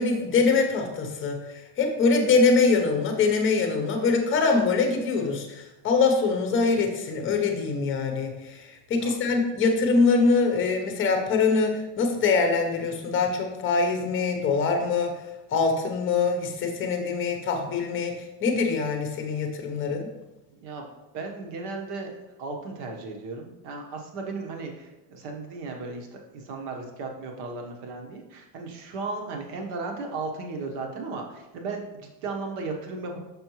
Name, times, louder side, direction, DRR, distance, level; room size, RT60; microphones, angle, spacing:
voice 1, 0.0-15.2 15.5-20.1, left 4 dB, 25° left, 4 dB, 0.8 m, -24 dB
voice 2, 21.1-33.2, right 3 dB, 55° right, 2 dB, 1.2 m, -35 dB
6.5 x 5.4 x 3.1 m, 1.0 s
cardioid pair, 165°, 50 cm